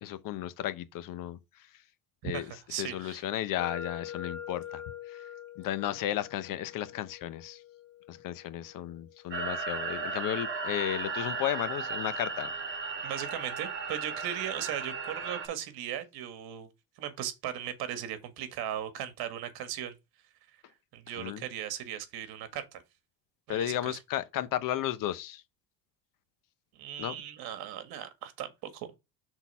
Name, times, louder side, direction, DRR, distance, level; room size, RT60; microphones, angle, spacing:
voice 1, 0.0-1.4 2.2-5.2 5.6-7.6 8.1-12.5 21.2-21.4 23.5-25.4 27.0-27.1, left 12 dB, 55° left, 0.8 m, -34 dB
voice 2, 2.2-3.2 13.0-16.7 17.0-20.0 20.9-22.8 23.5-24.0 26.8-29.0, right 10 dB, 65° right, 1.7 m, -38 dB
sound 1, 3.6-11.4, left 9 dB, 90° left, 1.5 m, -45 dB
sound 2, 9.3-15.5, right 4 dB, 30° right, 2.6 m, -35 dB
6.2 x 4.0 x 5.5 m
cardioid pair, 115°, 39 cm